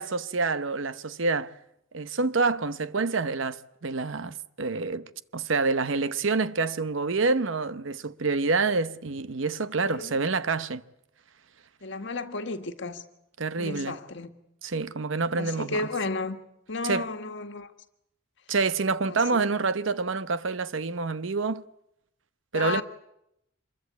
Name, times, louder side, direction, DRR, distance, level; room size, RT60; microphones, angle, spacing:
voice 1, 0.0-1.5 1.9-10.8 13.4-14.0 14.6-15.9 16.8-17.1 18.5-21.6 22.5-22.8, right 4 dB, 75° right, 0.9 m, -27 dB
voice 2, 9.8-10.1 11.8-13.0 13.6-14.3 15.3-16.4 16.7-17.7 19.1-19.4 22.5-22.8, left 3 dB, 65° left, 1.8 m, -33 dB
26.0 x 22.0 x 8.4 m
head